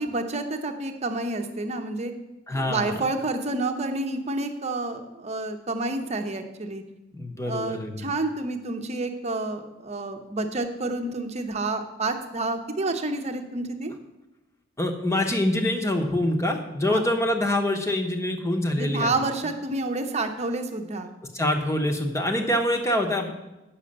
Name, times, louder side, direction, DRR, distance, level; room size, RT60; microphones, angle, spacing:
voice 1, 0.0-2.1 2.5-6.8 7.5-13.9 16.9-17.0 18.8-21.1, right 2 dB, 35° right, 6 dB, 0.9 m, -29 dB
voice 2, 2.5-3.0 7.1-8.1 14.8-19.1 21.3-23.3, left 1 dB, 15° left, 3 dB, 1.0 m, -25 dB
8.7 x 6.5 x 6.6 m, 0.99 s
head